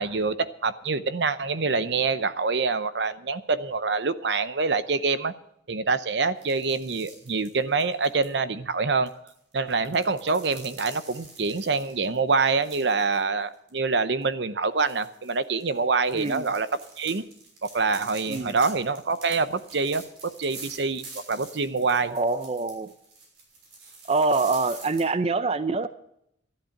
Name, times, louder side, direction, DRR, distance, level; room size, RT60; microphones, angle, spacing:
voice 1, 0.0-5.3 5.7-9.1 9.5-16.7 17.0-17.2 17.7-22.2, right 4 dB, 70° right, 13 dB, 0.8 m, -26 dB
sound 1, 6.4-8.2 9.1-13.2 13.5-13.7 14.2-14.3 14.8-25.0, right 3 dB, 85° right, 6.0 m, -46 dB
voice 2, 22.1-22.9 24.1-25.9, right 3 dB, 35° right, 12 dB, 0.5 m, -25 dB
13.5 x 11.5 x 5.8 m, 0.74 s
head